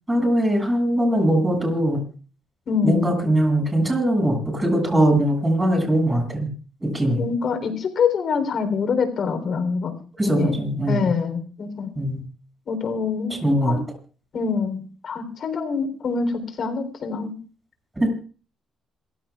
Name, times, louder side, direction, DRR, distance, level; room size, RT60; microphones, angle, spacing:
voice 1, 0.1-2.0 2.8-6.5 6.8-7.2 10.2-11.1 12.0-12.2 13.3-13.8 18.0-18.1, right 1 dB, 15° right, 2 dB, 7.2 m, -21 dB
voice 2, 2.7-3.1 7.2-9.9 10.2-10.6 10.9-11.9 12.7-13.8 14.3-17.3, left 5 dB, 60° left, 7 dB, 3.7 m, -25 dB
27.0 x 15.5 x 2.5 m, 0.40 s
cardioid pair, 90°, 0 cm